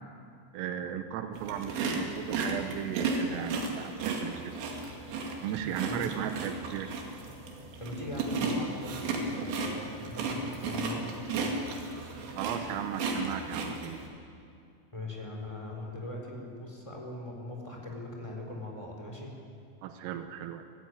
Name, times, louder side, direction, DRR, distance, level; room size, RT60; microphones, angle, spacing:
voice 1, 0.5-4.6 5.4-7.0 12.4-14.0 19.8-20.6, right 9 dB, 85° right, 8 dB, 3.6 m, -36 dB
sound 1, 1.3-14.1, right 3 dB, 65° right, 4.3 m, -34 dB
voice 2, 5.9-6.3 7.8-11.5 14.9-19.3, left 1 dB, 5° left, 0 dB, 3.4 m, -41 dB
26.5 x 14.5 x 9.5 m, 2.4 s
omnidirectional pair, 5.8 m